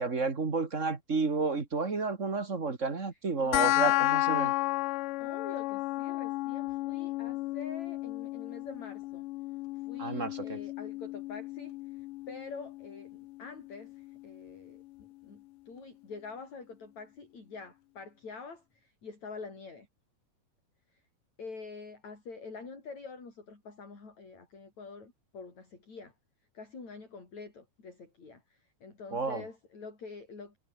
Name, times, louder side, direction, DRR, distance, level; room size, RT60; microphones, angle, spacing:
voice 1, 0.0-4.5 10.0-10.6 29.1-29.4, right 4 dB, 25° right, 1.8 m, -31 dB
voice 2, 3.4-4.1 5.2-9.2 9.7-19.9 20.9-21.0 21.4-26.1 26.5-30.6, left 4 dB, 45° left, 7.6 m, -46 dB
sound 1, 3.5-14.5, left 19 dB, 80° left, 2.0 m, -33 dB
omnidirectional pair, 4.3 m